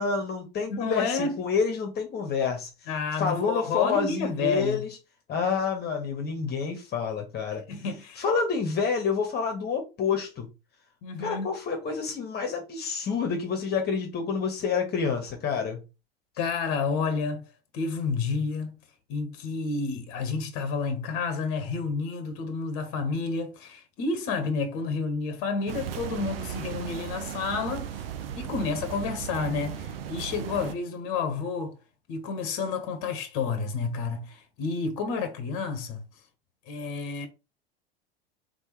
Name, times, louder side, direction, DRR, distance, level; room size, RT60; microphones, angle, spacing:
voice 1, 0.0-2.7 3.2-4.9 5.3-7.6 8.2-10.5 11.2-15.8, left 5 dB, 35° left, 1.3 m, -28 dB
voice 2, 0.7-1.4 2.9-4.8 7.7-8.2 11.0-11.5 16.4-17.5 17.7-18.8 19.1-28.0 28.4-31.8 32.1-36.0 36.7-37.3, left 4 dB, 50° left, 1.1 m, -30 dB
sound 1, 25.7-30.7, right 8 dB, 70° right, 0.6 m, -36 dB
3.9 x 3.5 x 3.0 m
figure-of-eight pair, 80°, 30 cm